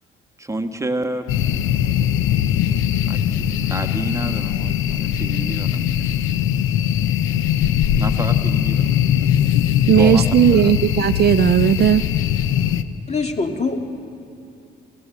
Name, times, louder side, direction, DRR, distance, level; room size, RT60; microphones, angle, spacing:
voice 1, 0.4-1.3 3.0-6.3 7.9-9.3 9.9-10.8, right 1 dB, 15° right, 6 dB, 1.5 m, -30 dB
sound 1, 1.3-12.8, left 10 dB, 90° left, 0.8 m, -20 dB
voice 2, 9.9-12.0, right 10 dB, 55° right, 14 dB, 0.5 m, -16 dB
voice 3, 13.1-13.8, left 4 dB, 35° left, 3 dB, 2.4 m, -23 dB
29.5 x 15.5 x 8.3 m, 2.7 s
cardioid pair, 90°, 20 cm